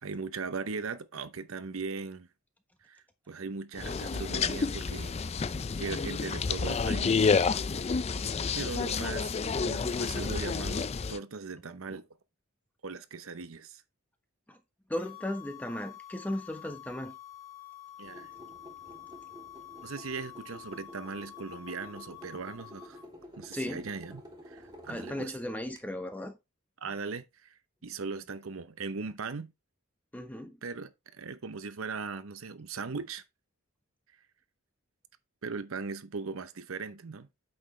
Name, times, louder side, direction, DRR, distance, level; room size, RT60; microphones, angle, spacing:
voice 1, 0.0-2.3 2.8-5.2 5.8-7.4 8.5-12.0 12.8-13.8 18.0-18.3 19.8-23.0 23.4-25.3 26.8-27.5 27.8-29.5 30.6-33.2 35.4-37.3, right 4 dB, 70° right, 0.8 m, -39 dB
sound 1, 3.8-11.2, left 5 dB, 30° left, 0.4 m, -29 dB
sound 2, 14.9-23.1, left 11 dB, 70° left, 1.3 m, -48 dB
voice 2, 14.9-17.1 23.5-23.9 24.9-26.4 30.1-30.6, left 1 dB, 10° left, 1.2 m, -36 dB
sound 3, 18.0-25.8, equal, 20° right, 2.6 m, -50 dB
8.6 x 6.2 x 3.2 m
head